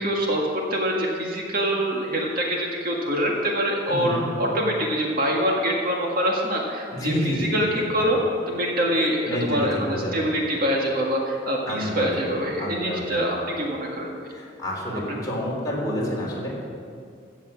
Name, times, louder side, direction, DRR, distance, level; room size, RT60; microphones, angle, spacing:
voice 1, 0.0-8.2 8.5-14.1 15.1-15.2, equal, 50° right, -1 dB, 1.8 m, -25 dB
voice 2, 3.9-4.2 6.9-7.8 9.2-10.1 11.6-12.1 12.6-13.1 14.3-16.5, equal, 20° left, -4 dB, 3.4 m, -28 dB
15.5 x 7.3 x 7.4 m, 2.2 s
head